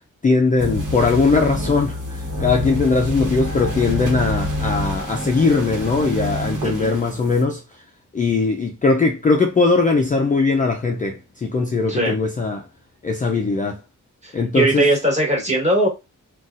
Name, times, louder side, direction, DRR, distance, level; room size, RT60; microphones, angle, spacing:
voice 1, 0.2-7.8 8.1-12.7 13.0-13.8 14.3-14.9, left 4 dB, 25° left, 0.3 m, -20 dB
sound 1, 0.6-7.4, left 1 dB, 75° right, 1.1 m, -27 dB
voice 2, 14.2-15.9, right 1 dB, 20° right, 1.4 m, -20 dB
4.0 x 2.3 x 2.4 m
wide cardioid pair, 150°, 32 cm